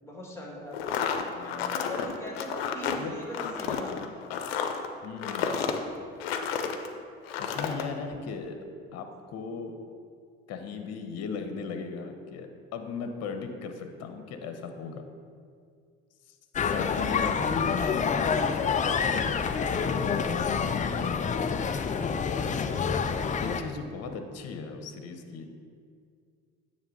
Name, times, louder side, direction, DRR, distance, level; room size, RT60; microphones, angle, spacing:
voice 1, 0.0-0.8 1.7-4.0, equal, 10° left, -1 dB, 1.9 m, -40 dB
sound 1, 0.7-6.9 7.2-7.8, left 7 dB, 90° left, 0.5 m, -31 dB
voice 2, 1.3-1.9 3.0-3.2 5.0-5.6 7.4-8.6 8.9-9.8 10.5-15.0 16.6-18.0 18.4-18.8 19.7-21.1 22.2-22.6 23.4-25.5, left 5 dB, 60° left, 6 dB, 0.8 m, -38 dB
sound 2, 16.6-23.6, left 6 dB, 25° left, 0.4 m, -27 dB
9.1 x 3.3 x 5.3 m, 2.2 s
hypercardioid pair, 65°, 30 cm